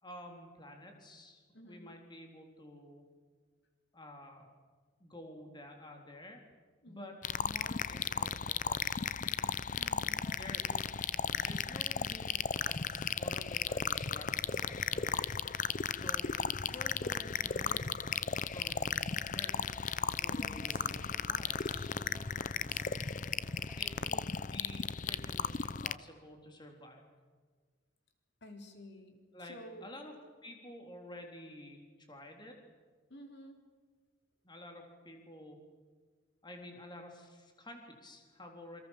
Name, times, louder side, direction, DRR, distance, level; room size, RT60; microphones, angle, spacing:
voice 1, 0.0-3.0 3.9-4.5 5.0-6.4 6.9-9.1 10.3-10.6 11.3-14.8 15.9-17.9 18.5-19.0 19.3-19.6 20.2-22.2 23.8-27.1 29.3-29.6 29.8-30.1 30.4-31.8 32.1-32.6 34.4-35.6 36.4-38.8, left 1 dB, 25° left, 3 dB, 3.8 m, -50 dB
sound 1, 7.2-26.0, left 6 dB, 45° left, 0.7 m, -35 dB
voice 2, 9.8-10.2 20.3-20.6 28.4-29.2 29.4-29.9 33.1-33.6, left 1 dB, 60° left, 5 dB, 3.8 m, -50 dB
sound 2, 10.2-24.1, right 1 dB, 10° right, 1.9 m, -55 dB
sound 3, 21.6-24.3 25.4-25.5, equal, 40° right, 4.0 m, -62 dB
28.0 x 25.5 x 7.4 m, 1.5 s
head